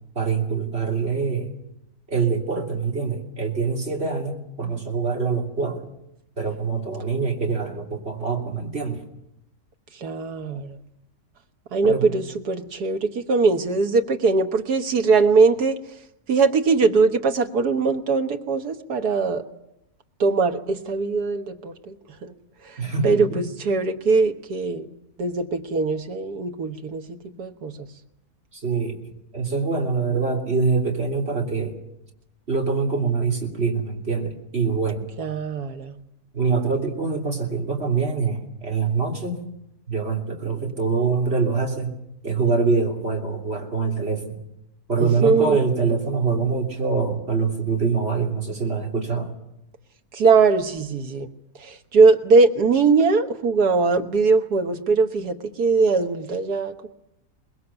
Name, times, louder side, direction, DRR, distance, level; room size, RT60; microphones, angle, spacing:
voice 1, 0.1-1.5 2.1-5.9 6.4-9.0 11.8-12.1 22.8-23.4 28.5-29.0 29.3-31.8 32.5-35.0 36.3-39.4 39.9-42.0 42.2-44.4 44.9-49.3, right 4 dB, 40° right, 1 dB, 3.4 m, -24 dB
voice 2, 9.9-10.8 11.7-15.8 16.3-19.4 20.2-22.0 22.2-22.3 22.6-24.9 25.2-27.9 35.2-36.0 45.0-45.6 50.1-51.3 51.6-56.9, right 4 dB, 90° right, 6 dB, 1.9 m, -21 dB
23.0 x 20.5 x 7.0 m, 0.83 s
omnidirectional pair, 1.6 m